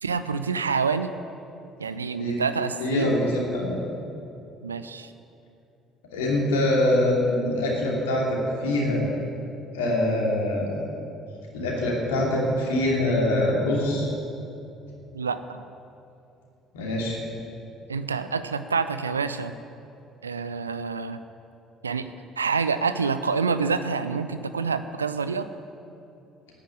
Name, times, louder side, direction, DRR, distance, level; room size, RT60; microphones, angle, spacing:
voice 1, 0.0-1.1 1.8-3.2 4.6-5.1 15.1-15.6 17.9-19.5 20.2-21.2 21.8-22.1 22.4-25.5, right 5 dB, 85° right, 11 dB, 0.4 m, -27 dB
voice 2, 2.8-3.8 6.1-9.0 9.7-10.8 11.5-14.1 16.7-17.2, left 1 dB, 75° left, -2 dB, 2.7 m, -24 dB
9.9 x 9.0 x 9.0 m, 2.7 s
figure-of-eight pair, 50°, 0 cm